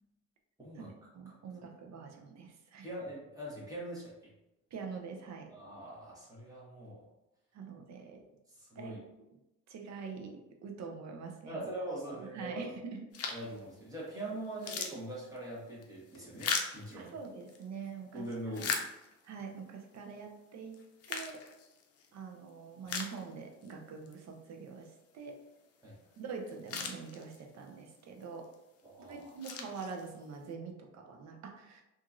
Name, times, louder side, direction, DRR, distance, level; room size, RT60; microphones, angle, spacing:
voice 1, 0.8-2.9 4.7-5.5 7.5-8.2 8.8-9.0 9.7-11.7 12.1-13.1 17.0-18.7 19.2-21.4 22.1-25.4 26.2-28.5 29.0-31.8, right 5 dB, 60° right, 3 dB, 0.6 m, -45 dB
voice 2, 2.8-4.3 5.5-7.1 8.5-9.0 11.5-12.7 13.3-17.1 18.1-18.9 25.8-26.0 28.8-29.2, right 1 dB, 10° right, -6 dB, 1.3 m, -42 dB
sound 1, 13.1-13.6 14.1-14.2 14.4-17.6 18.2-19.4 19.9-20.0 20.7-22.1 22.5-22.6 22.9-23.7 24.1-24.2 26.1-26.2 26.5-27.6 28.2-28.5 29.1-30.3, left 5 dB, 55° left, 0.5 m, -39 dB
2.8 x 2.6 x 2.5 m, 0.92 s
cardioid pair, 90°, 30 cm